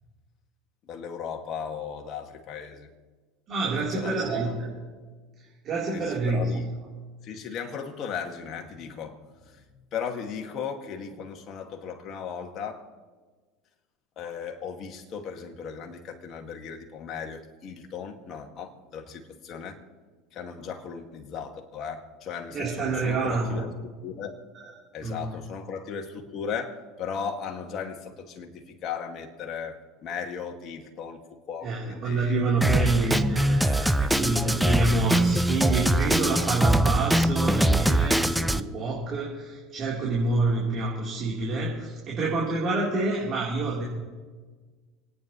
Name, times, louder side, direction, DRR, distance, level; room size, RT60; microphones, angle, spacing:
voice 1, 0.8-2.9 3.9-4.3 5.9-6.7 7.2-9.6 9.9-12.9 14.2-19.8 20.3-23.7 24.0-24.3 24.9-31.2 31.5-32.5 34.1-34.3, left 6 dB, 45° left, 3 dB, 2.2 m, -36 dB
voice 2, 3.5-4.5 5.6-6.5 22.5-23.6 24.6-24.7 25.0-25.2 31.6-43.8, right 3 dB, 45° right, -5 dB, 3.7 m, -27 dB
Drum kit, 32.6-38.6, right 1 dB, 5° right, 0.6 m, -23 dB
28.5 x 9.8 x 3.2 m, 1.4 s
hypercardioid pair, 90°, 0 cm